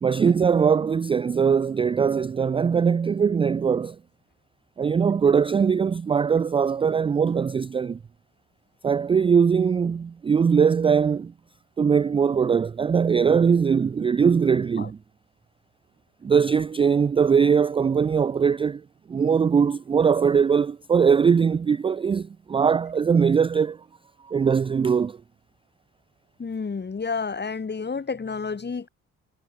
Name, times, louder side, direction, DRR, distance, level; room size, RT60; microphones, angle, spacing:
voice 1, 0.0-4.0 4.8-8.0 8.8-11.3 11.8-15.0 16.2-18.8 19.1-23.8 24.2-25.2, right 6 dB, 15° right, 0.3 m, -21 dB
voice 2, 26.4-28.9, left 5 dB, 30° left, 2.8 m, -30 dB
hypercardioid pair, 50°, 33 cm